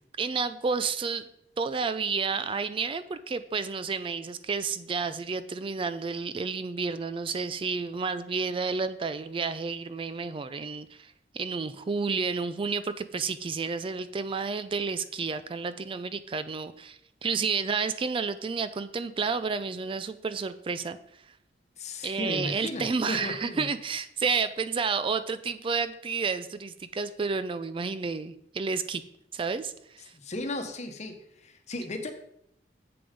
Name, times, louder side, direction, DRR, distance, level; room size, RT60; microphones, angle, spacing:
voice 1, 0.2-1.2 1.6-21.2 22.0-29.0 29.3-30.1, right 5 dB, 30° right, 13 dB, 0.3 m, -31 dB
voice 2, 21.8-23.7 30.1-32.1, left 2 dB, 40° left, 6 dB, 1.1 m, -35 dB
7.8 x 6.8 x 5.3 m, 0.75 s
head